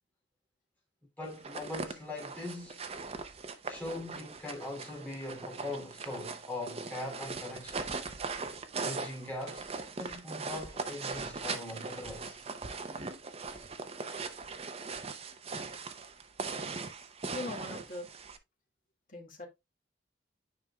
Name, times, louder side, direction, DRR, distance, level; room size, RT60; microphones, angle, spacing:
voice 1, 1.2-2.8 3.6-7.8 8.8-12.4, left 2 dB, 10° left, 2.7 m, -41 dB
sound 1, 1.3-18.4, right 4 dB, 35° right, 0.6 m, -40 dB
voice 2, 17.3-18.1 19.1-19.5, left 2 dB, 45° left, 1.8 m, -41 dB
9.9 x 4.9 x 2.3 m
head